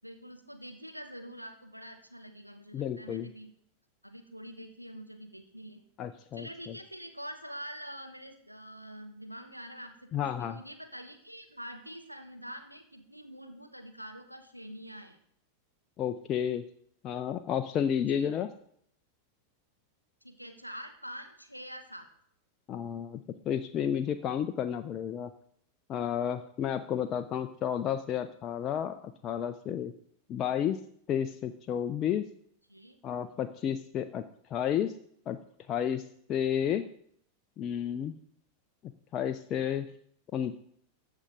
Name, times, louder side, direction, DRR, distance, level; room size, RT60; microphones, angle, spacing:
voice 1, 0.0-3.5 4.0-5.8 6.3-15.2 18.1-18.3 20.2-22.1 32.7-33.0, equal, 90° right, 6 dB, 1.1 m, -45 dB
voice 2, 2.7-3.3 6.0-6.8 10.1-10.6 16.0-16.6 17.0-18.5 22.7-25.3 25.9-29.9 30.3-30.8 31.1-32.2 33.0-34.2 34.5-34.9 35.3-35.4 35.7-36.8 37.6-38.1 39.1-39.9 40.3-40.6, left 9 dB, 30° left, 8 dB, 0.4 m, -31 dB
14.5 x 5.6 x 3.8 m, 0.67 s
figure-of-eight pair, 90°, 0 cm